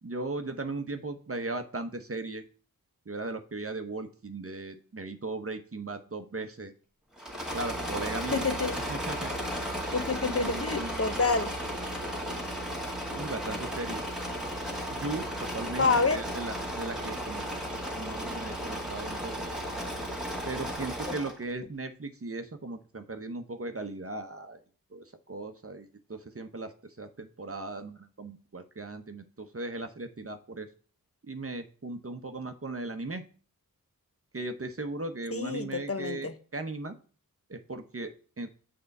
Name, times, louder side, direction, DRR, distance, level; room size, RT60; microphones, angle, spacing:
voice 1, 0.0-2.4 3.1-6.7 7.5-8.4 8.9-9.3 10.2-11.1 13.1-14.0 14.9-17.6 18.0-19.4 20.4-24.6 24.9-30.7 31.2-33.2 34.3-36.9 37.5-38.5, right 2 dB, 40° right, 0.9 m, -37 dB
Engine / Mechanisms, 7.2-21.4, equal, ahead, 1.9 m, -34 dB
voice 2, 8.3-8.8 9.9-11.5 15.8-16.2 35.3-36.3, left 4 dB, 40° left, 0.9 m, -28 dB
6.7 x 3.8 x 5.3 m
wide cardioid pair, 50°, 35 cm